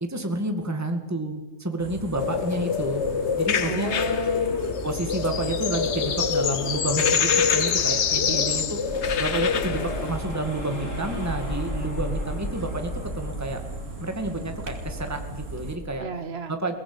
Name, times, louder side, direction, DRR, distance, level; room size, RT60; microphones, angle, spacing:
voice 1, 0.0-3.0 3.4-3.9 4.5-8.8 9.2-13.6 14.0-16.0 16.5-16.7, right 2 dB, 15° right, 5 dB, 2.1 m, -30 dB
sound 1, 1.8-15.8, right 3 dB, 75° right, 2.8 m, -39 dB
sound 2, 2.2-10.2, left 7 dB, 65° left, 1.3 m, -25 dB
voice 2, 3.6-4.6 8.1-8.7 16.0-16.6, right 2 dB, 55° right, 8 dB, 1.8 m, -34 dB
sound 3, 8.9-16.0, left 1 dB, 90° left, 6.7 m, -34 dB
22.0 x 19.0 x 8.7 m, 1.1 s
omnidirectional pair, 1.3 m